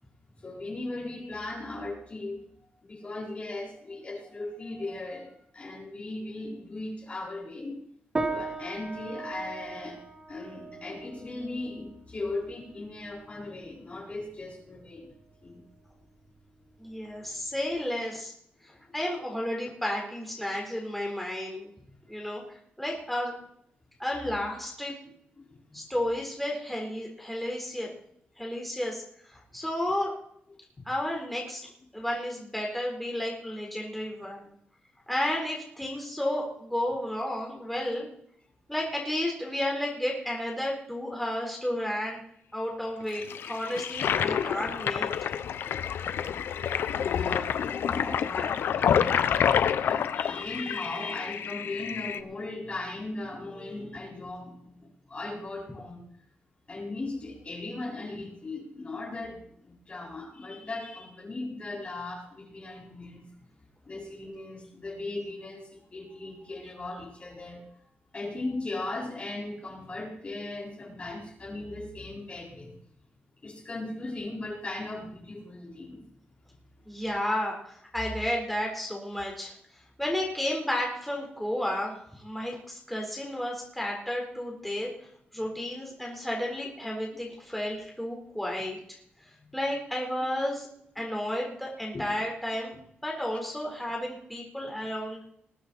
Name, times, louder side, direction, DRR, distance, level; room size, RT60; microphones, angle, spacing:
voice 1, 0.4-2.4 2.8-7.8 8.3-10.0 10.3-15.1 15.4-15.6 25.5-25.9 30.8-30.9 47.0-49.4 49.7-56.0 56.7-63.3 63.9-67.8 68.1-72.8 73.4-76.0 91.9-92.1, left 2 dB, 35° left, -1 dB, 4.4 m, -38 dB
sound 1, 8.2-17.8, right 3 dB, 25° right, 2.1 m, -39 dB
voice 2, 16.8-18.3 18.6-21.7 22.1-23.3 24.0-24.9 25.7-27.9 28.4-29.0 29.3-30.1 30.9-31.7 31.9-34.5 35.1-38.1 38.7-42.2 42.5-45.1 76.8-79.5 80.0-84.9 85.3-89.0 89.5-90.7 91.0-95.2, left 1 dB, 5° left, -1 dB, 4.1 m, -32 dB
Toilet flush, 43.1-52.2, left 8 dB, 85° left, 0.7 m, -28 dB
20.5 x 9.4 x 4.2 m, 0.67 s
wide cardioid pair, 110°, 4 cm